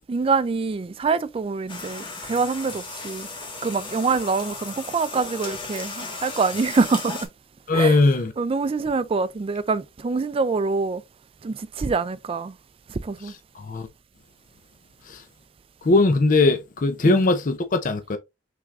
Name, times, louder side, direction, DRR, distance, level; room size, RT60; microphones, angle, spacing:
voice 1, 0.1-3.3 3.6-7.3 7.7-8.0 8.4-11.0 11.4-12.5 12.9-13.3 17.0-17.2, right 4 dB, 30° right, 0.4 m, -25 dB
sound 1, 1.7-7.3, left 3 dB, 30° left, 1.4 m, -35 dB
voice 2, 7.7-8.3 13.5-13.9 15.1-15.2 15.8-18.2, left 2 dB, 50° left, 0.5 m, -20 dB
5.9 x 3.5 x 2.4 m
head